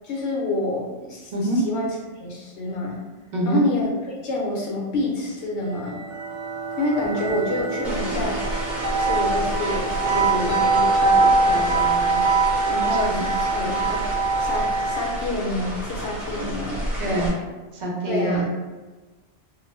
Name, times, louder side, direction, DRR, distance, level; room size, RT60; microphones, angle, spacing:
voice 1, 0.0-1.3 1.6-3.0 3.4-3.9 4.2-6.0 6.8-8.4 9.0-12.2 12.7-14.1 14.4-17.2 18.1-18.4, left 2 dB, 75° left, -2 dB, 0.8 m, -28 dB
sound 1, 5.8-15.2, right 3 dB, 85° right, 1.0 m, -23 dB
sound 2, 7.0-7.3 7.6-7.9 8.2-8.5 8.9-9.1 9.4-9.5 9.9-10.5 10.8-11.8, equal, 20° right, 0.9 m, -37 dB
sound 3, 7.8-17.3, equal, ahead, 0.5 m, -31 dB
voice 2, 17.0-17.3 17.7-18.4, right 2 dB, 50° right, -3 dB, 0.6 m, -24 dB
2.3 x 2.1 x 3.1 m, 1.2 s
omnidirectional pair, 1.2 m